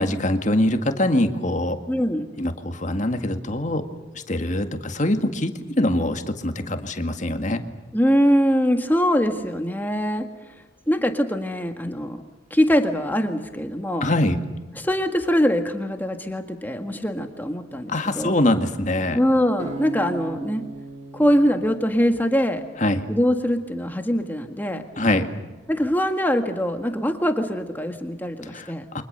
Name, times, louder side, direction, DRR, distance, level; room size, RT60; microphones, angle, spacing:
voice 1, 0.0-1.8 2.4-3.9 4.1-7.6 14.0-14.4 17.9-19.2 22.8-23.1 25.0-25.3 28.5-29.0, left 1 dB, 40° left, 6 dB, 2.0 m, -23 dB
voice 2, 1.9-2.2 7.9-10.3 10.9-12.2 12.5-14.0 14.7-18.3 19.1-20.6 21.1-22.6 23.1-24.8 25.7-28.8, equal, 10° left, 5 dB, 1.7 m, -22 dB
Acoustic guitar, 19.6-22.8, right 3 dB, 35° right, 3.1 m, -37 dB
29.5 x 24.5 x 6.8 m, 1.3 s
head